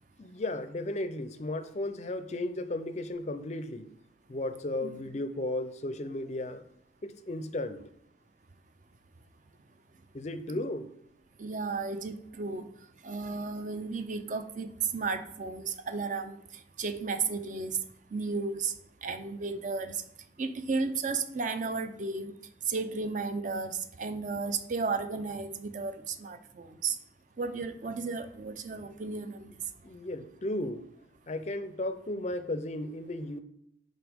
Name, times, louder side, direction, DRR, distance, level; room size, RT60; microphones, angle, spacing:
voice 1, 0.2-3.9 4.3-6.6 7.0-7.8 10.1-10.9 29.8-30.9 31.3-33.4, left 1 dB, 35° left, 11 dB, 0.5 m, -35 dB
voice 2, 11.4-12.7 13.0-16.4 16.8-17.8 18.1-18.7 19.0-20.0 20.4-22.3 22.7-27.0 27.4-29.5, right 4 dB, 40° right, 10 dB, 0.5 m, -33 dB
11.0 x 4.0 x 3.5 m, 0.73 s
head